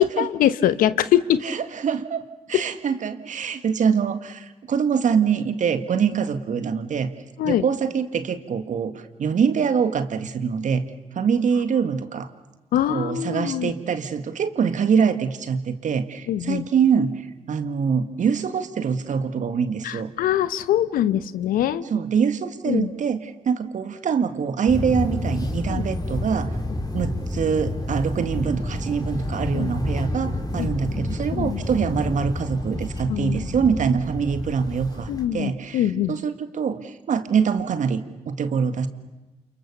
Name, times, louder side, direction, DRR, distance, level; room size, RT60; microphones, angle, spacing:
voice 1, 0.0-1.4 7.4-7.6 12.7-13.7 16.3-16.6 19.8-21.8 22.7-22.9 25.7-25.8 29.5-29.7 30.6-30.7 31.3-31.6 33.1-33.5 35.1-36.2, left 11 dB, 70° left, 15 dB, 1.0 m, -23 dB
voice 2, 1.4-2.2 2.5-7.1 7.4-10.9 11.2-12.3 12.9-20.1 21.9-26.5 26.9-38.9, right 6 dB, 55° right, 10 dB, 1.9 m, -24 dB
sound 1, 24.7-35.3, left 1 dB, 25° left, 4.8 m, -29 dB
28.5 x 28.5 x 6.9 m, 1.1 s
hypercardioid pair, 40°, 15 cm